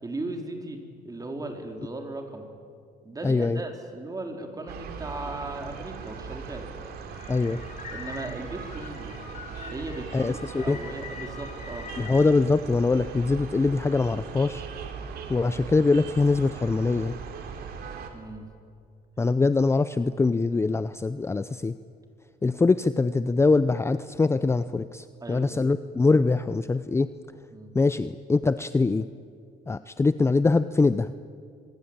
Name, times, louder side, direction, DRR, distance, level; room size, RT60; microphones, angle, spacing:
voice 1, 0.0-2.5 3.0-6.7 7.9-9.2 9.7-11.9 18.1-18.5 25.2-25.5 27.5-27.7, right 2 dB, 20° right, 3 dB, 4.1 m, -37 dB
voice 2, 3.2-3.6 7.3-7.6 10.1-10.8 12.0-14.6 15.3-17.1 19.2-21.7 22.4-27.1 27.7-29.1 29.7-31.1, left 3 dB, 15° left, 13 dB, 0.6 m, -23 dB
sound 1, 4.7-18.1, right 6 dB, 70° right, 3.4 m, -39 dB
sound 2, 7.1-12.3, left 5 dB, 45° left, 4.0 m, -43 dB
25.0 x 22.5 x 8.9 m, 2.3 s
cardioid pair, 110°, 17 cm